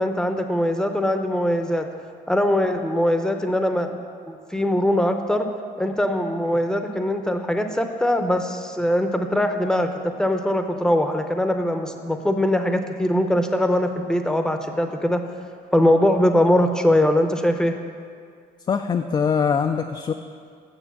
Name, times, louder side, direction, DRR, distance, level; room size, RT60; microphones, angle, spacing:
voice 1, 0.0-1.8 2.3-4.0 4.3-5.5 5.8-9.9 10.2-15.2 15.7-17.7, left 1 dB, 5° left, 6 dB, 0.7 m, -21 dB
voice 2, 18.7-20.1, left 6 dB, 25° left, 6 dB, 0.3 m, -22 dB
7.0 x 6.6 x 7.2 m, 2.2 s
cardioid pair, 110°, 17 cm